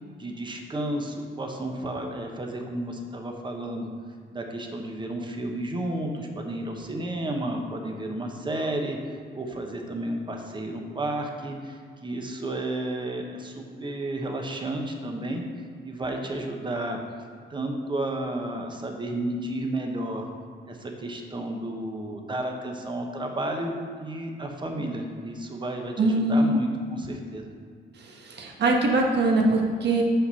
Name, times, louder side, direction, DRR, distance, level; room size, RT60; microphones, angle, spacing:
voice 1, 0.2-3.9 4.3-9.0 9.3-15.5 15.8-17.0 17.5-20.3 20.7-27.5, right 1 dB, 25° right, 2 dB, 1.1 m, -32 dB
voice 2, 26.0-26.5 28.0-30.0, right 2 dB, 60° right, 0 dB, 1.5 m, -22 dB
6.6 x 5.7 x 5.6 m, 2.1 s
cardioid pair, 90°, 20 cm